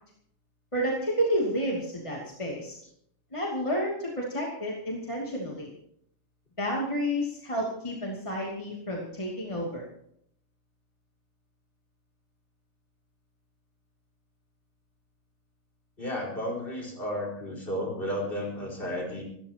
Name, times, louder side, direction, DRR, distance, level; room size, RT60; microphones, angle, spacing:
voice 1, 0.7-2.8 3.3-5.7 6.6-9.8, equal, 20° left, -4 dB, 2.8 m, -30 dB
voice 2, 16.0-19.2, equal, 40° left, 0 dB, 5.3 m, -33 dB
27.0 x 14.5 x 3.0 m, 0.69 s
omnidirectional pair, 1.4 m